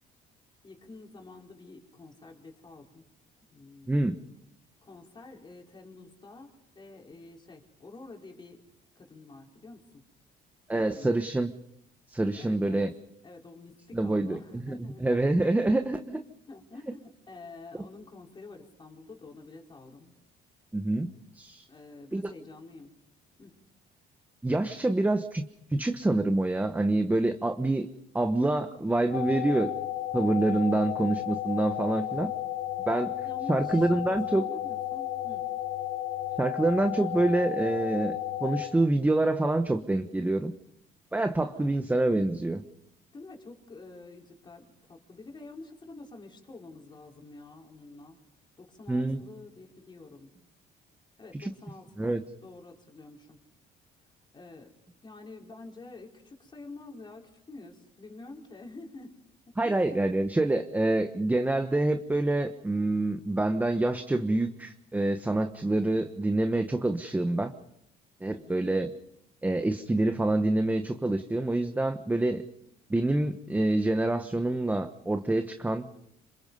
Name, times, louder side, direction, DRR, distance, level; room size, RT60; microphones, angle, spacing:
voice 1, 0.6-3.0 3.5-4.0 4.8-8.6 8.9-10.0 10.7-11.1 12.4-12.9 13.2-15.1 16.1-20.1 21.7-22.9 23.4-23.6 24.9-25.1 33.2-35.4 41.4-41.8 43.1-48.2 48.6-50.3 51.2-52.1 52.4-53.4 54.3-54.7 55.0-59.2 59.4-60.0 68.3-68.7, left 3 dB, 25° left, 1 dB, 4.7 m, -48 dB
voice 2, 10.7-11.5 12.1-12.9 13.9-14.7 15.0-16.0 20.7-21.1 21.3-21.6 22.1-22.2 24.4-25.4 25.7-27.9 28.1-29.7 30.1-32.3 32.8-33.1 33.5-34.4 36.4-38.2 38.4-40.5 41.1-42.6 48.9-49.2 51.4-51.5 52.0-52.2 59.6-67.5 68.2-68.9 69.4-72.4 72.9-75.9, right 2 dB, 10° right, 7 dB, 1.2 m, -26 dB
sound 1, 29.1-38.7, left 13 dB, 90° left, 2.4 m, -33 dB
27.0 x 26.0 x 5.5 m, 0.78 s
cardioid pair, 110°, 17 cm